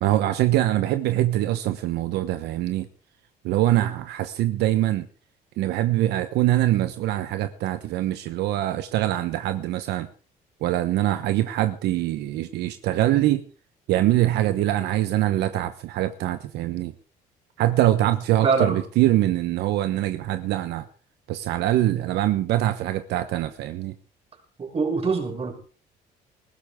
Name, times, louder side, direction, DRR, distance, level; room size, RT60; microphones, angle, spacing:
voice 1, 0.0-2.9 3.4-5.1 5.6-10.1 10.6-13.5 13.9-16.9 17.6-20.9 21.3-23.9, right 14 dB, 80° right, 10 dB, 1.1 m, -23 dB
voice 2, 18.4-18.8 24.6-25.5, right 4 dB, 35° right, 2 dB, 5.9 m, -24 dB
20.0 x 15.5 x 3.7 m, 0.37 s
cardioid pair, 110°, 17 cm